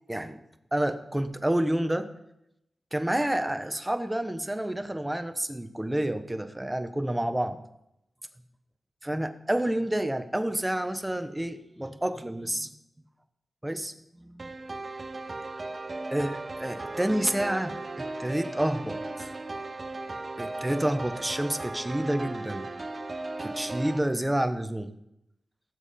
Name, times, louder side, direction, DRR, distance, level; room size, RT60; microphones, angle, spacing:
voice 1, 0.1-0.4 0.7-2.1 2.9-7.6 9.0-12.7 13.6-13.9 14.2-14.5 16.1-19.3 20.4-22.7 23.4-24.9, right 1 dB, 10° right, 8 dB, 1.0 m, -29 dB
sound 1, 14.4-24.0, right 2 dB, 35° right, 0.8 m, -36 dB
18.5 x 7.3 x 4.3 m, 0.84 s
wide cardioid pair, 80°, 0 cm